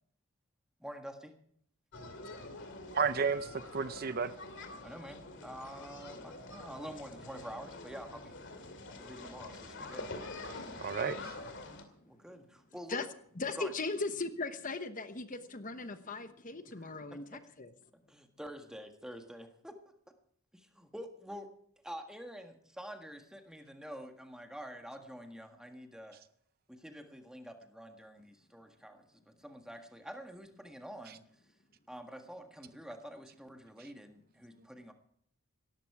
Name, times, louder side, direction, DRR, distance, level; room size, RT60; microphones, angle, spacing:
voice 1, 0.8-1.4 4.8-8.4 8.9-10.1 10.5-10.8 12.1-13.1 13.6-13.7 16.8-16.9 17.9-19.8 20.5-21.5 21.8-26.2 26.7-31.2 31.9-34.9, equal, 5° right, 5 dB, 1.6 m, -47 dB
sound 1, 1.9-11.8, left 2 dB, 55° left, 2.5 m, -46 dB
voice 2, 2.9-4.3 10.8-11.4, right 5 dB, 45° right, 13 dB, 0.6 m, -32 dB
voice 3, 13.4-17.7, left 3 dB, 35° left, 10 dB, 1.1 m, -38 dB
18.0 x 14.0 x 4.8 m, 0.65 s
head